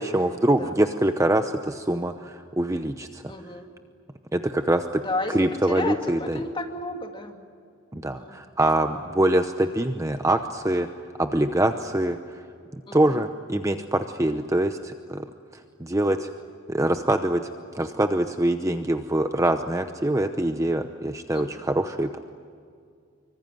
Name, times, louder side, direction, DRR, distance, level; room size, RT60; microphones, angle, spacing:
voice 1, 0.0-3.2 4.3-5.0 5.3-6.4 7.9-10.9 11.2-12.4 12.7-15.3 15.5-16.3 16.7-17.4 17.7-22.2, right 1 dB, 15° right, 7 dB, 0.8 m, -24 dB
voice 2, 3.3-3.7 5.0-5.3 5.7-7.4 7.9-8.3 12.9-13.2 21.3-21.7, left 2 dB, 25° left, 3 dB, 2.6 m, -32 dB
25.5 x 24.5 x 9.3 m, 2.2 s
head